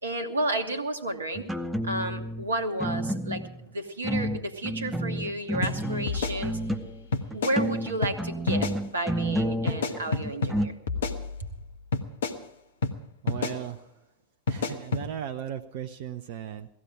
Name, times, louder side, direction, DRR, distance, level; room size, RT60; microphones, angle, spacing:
voice 1, 0.0-1.5 1.8-6.6 7.3-10.7, right 1 dB, 75° right, 7 dB, 1.2 m, -32 dB
sound 1, 1.4-2.4 2.8-3.6 4.0-7.1 7.3-10.7, right 1 dB, 5° right, 1.0 m, -30 dB
sound 2, 5.6-5.8 6.1-6.8 7.1-7.6 8.0-8.2 8.5-8.8 9.7-10.6 10.9-11.6 11.9-12.4 12.8-13.0 13.3-13.6 14.5-15.1, left 4 dB, 65° left, 1.2 m, -29 dB
voice 2, 13.2-13.8 14.5-16.7, right 9 dB, 50° right, 6 dB, 0.6 m, -36 dB
17.0 x 14.0 x 4.8 m, 0.77 s
figure-of-eight pair, 90°, 0 cm